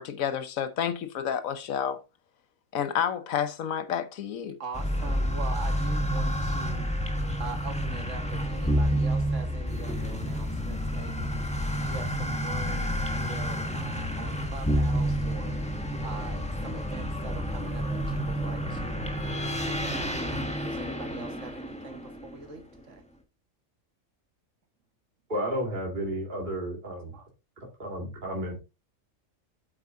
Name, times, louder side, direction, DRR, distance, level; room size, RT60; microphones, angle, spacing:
voice 1, 0.0-2.0 2.7-4.6, left 8 dB, 85° left, 1.3 m, -30 dB
voice 2, 4.6-6.9 7.4-11.4 11.9-15.6 16.0-19.1 19.5-20.2 20.6-23.0 27.1-27.3, right 4 dB, 65° right, 1.9 m, -43 dB
sound 1, 4.7-22.7, equal, 5° left, 1.5 m, -29 dB
voice 3, 25.3-27.1 27.8-28.6, equal, 35° right, 2.3 m, -32 dB
8.7 x 8.3 x 2.6 m
omnidirectional pair, 1.4 m